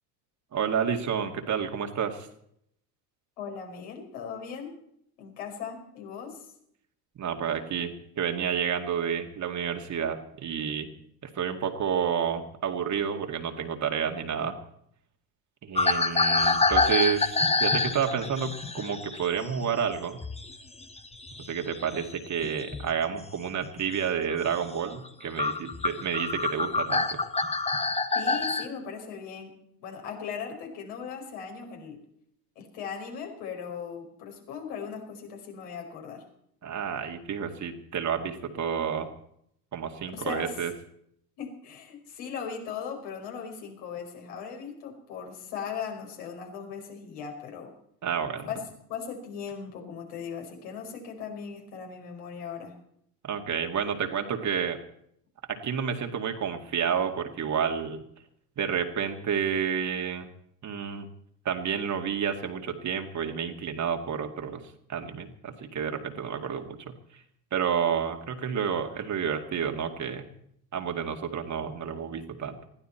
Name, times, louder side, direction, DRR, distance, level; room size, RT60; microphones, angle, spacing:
voice 1, 0.5-2.3 7.2-10.9 11.2-14.6 15.6-20.2 21.5-27.2 36.6-39.1 39.7-40.7 48.0-48.5 53.2-54.8 55.5-58.0 58.6-60.3 60.6-61.1 61.4-64.6 64.9-66.8 67.1-67.2 67.5-70.3 70.7-72.6, right 7 dB, 35° right, 4 dB, 2.2 m, -30 dB
voice 2, 3.4-4.7 5.2-6.4 28.1-29.5 29.8-32.0 32.5-36.2 40.1-40.5 41.4-47.7 48.4-48.6 48.9-52.8, left 6 dB, 60° left, 2 dB, 5.1 m, -38 dB
sound 1, 15.7-20.6 20.8-22.9 23.5-23.8 24.3-24.5 25.0-25.1 25.4-28.7, left 3 dB, 10° left, 1.3 m, -27 dB
21.0 x 14.5 x 4.4 m, 0.71 s
hypercardioid pair, 80°, 50 cm